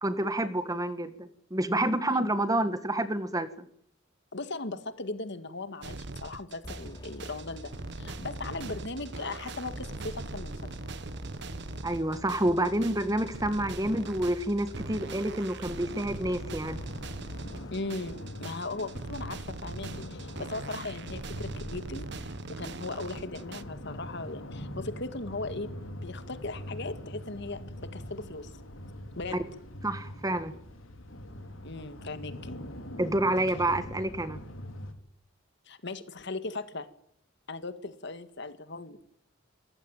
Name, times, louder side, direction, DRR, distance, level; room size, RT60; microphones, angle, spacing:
voice 1, 0.0-3.6 11.8-16.8 29.8-30.5 33.0-34.4, right 1 dB, 20° right, 11 dB, 1.7 m, -28 dB
voice 2, 4.3-7.7 8.0-10.7 17.7-25.7 26.0-28.5 29.2-29.4 31.6-32.6 35.7-36.9 37.5-39.0, left 3 dB, 60° left, 11 dB, 2.0 m, -38 dB
sound 1, 5.8-23.6, right 3 dB, 60° right, 1.2 m, -41 dB
sound 2, 6.6-18.3, equal, 20° left, 3.2 m, -46 dB
sound 3, 15.9-34.9, left 1 dB, 85° left, 3.6 m, -43 dB
27.5 x 15.5 x 9.2 m, 0.69 s
head